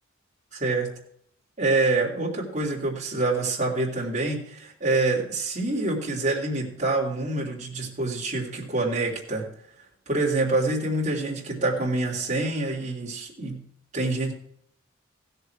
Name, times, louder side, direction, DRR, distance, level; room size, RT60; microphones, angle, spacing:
voice 1, 0.5-0.9 1.6-9.5 10.1-13.6 13.9-14.3, right 2 dB, 35° right, -3 dB, 2.9 m, -26 dB
16.0 x 6.9 x 4.7 m, 0.68 s
head